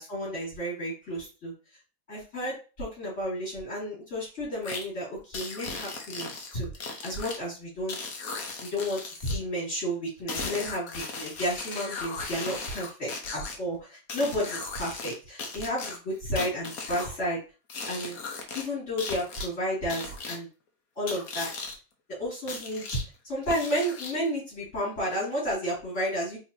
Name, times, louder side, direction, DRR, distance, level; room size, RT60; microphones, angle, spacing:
voice 1, 0.0-1.5 2.1-6.7 7.0-8.0 8.6-17.4 17.9-18.2 18.5-20.5 21.0-21.5 22.2-23.0 23.2-26.4, equal, 50° left, -8 dB, 2.9 m, -32 dB
sound 1, 4.6-4.8 5.3-7.4 7.9-9.4 10.3-13.6 14.1-15.1 15.4-17.1 17.7-18.6 19.0-19.5 19.9-20.4 21.1-21.7 22.5-23.0 23.5-24.3, left 4 dB, 75° left, 1.4 m, -37 dB
4.2 x 4.2 x 2.7 m, 0.33 s
omnidirectional pair, 1.6 m